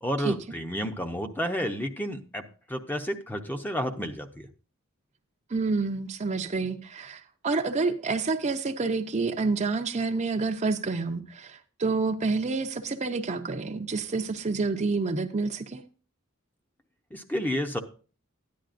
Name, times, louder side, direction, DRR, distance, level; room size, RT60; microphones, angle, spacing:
voice 1, 0.0-4.5 17.1-17.8, equal, 10° left, 6 dB, 0.7 m, -31 dB
voice 2, 5.5-15.8, right 3 dB, 35° right, 6 dB, 0.6 m, -28 dB
13.0 x 10.5 x 2.5 m, 0.37 s
head